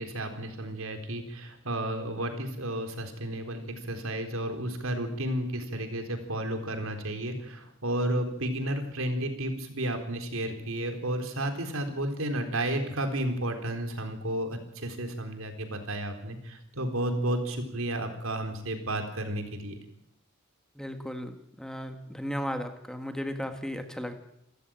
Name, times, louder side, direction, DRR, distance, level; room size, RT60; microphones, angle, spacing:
voice 1, 0.0-19.7, right 1 dB, 80° right, 6 dB, 4.1 m, -32 dB
voice 2, 20.8-24.1, equal, 5° left, 6 dB, 1.7 m, -35 dB
27.5 x 15.0 x 8.9 m, 0.77 s
head